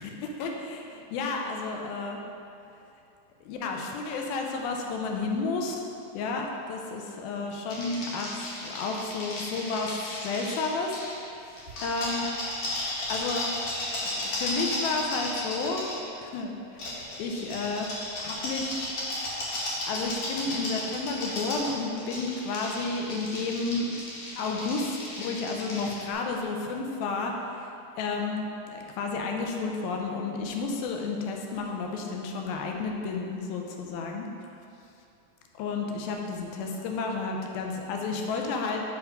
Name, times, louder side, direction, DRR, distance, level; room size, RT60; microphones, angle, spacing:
voice 1, 0.4-0.8 1.1-2.2 3.4-5.9 6.1-11.5 11.8-12.3 13.1-13.5 14.1-15.9 16.2-17.9 18.2-18.9 19.8-23.9 24.4-27.7 28.0-34.3 35.6-38.8, left 3 dB, 85° left, 1 dB, 2.4 m, -31 dB
sound 1, 7.7-11.2 11.6-16.0 16.8-26.0, left 1 dB, 60° left, 2.1 m, -34 dB
7.1 x 3.5 x 5.1 m, 2.6 s
omnidirectional pair, 4.2 m